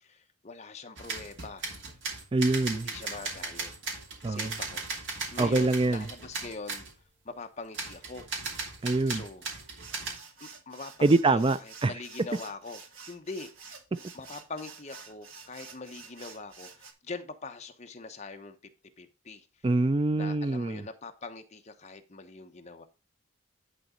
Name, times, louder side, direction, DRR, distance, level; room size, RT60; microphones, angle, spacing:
voice 1, 0.0-1.8 2.7-3.7 4.3-4.9 5.3-6.9 7.2-8.3 9.1-9.4 10.4-12.8 13.1-13.8 14.1-18.6 19.0-19.4 20.1-22.9, left 3 dB, 35° left, 1.0 m, -43 dB
sound 1, 1.0-6.9 7.7-10.2, right 4 dB, 65° right, 2.6 m, -37 dB
voice 2, 2.3-2.9 4.2-4.5 5.4-6.1 8.8-9.2 11.0-11.9 19.6-20.8, right 2 dB, 25° right, 0.4 m, -25 dB
sound 2, 9.8-16.9, right 5 dB, 85° right, 1.7 m, -49 dB
10.5 x 4.0 x 5.1 m
head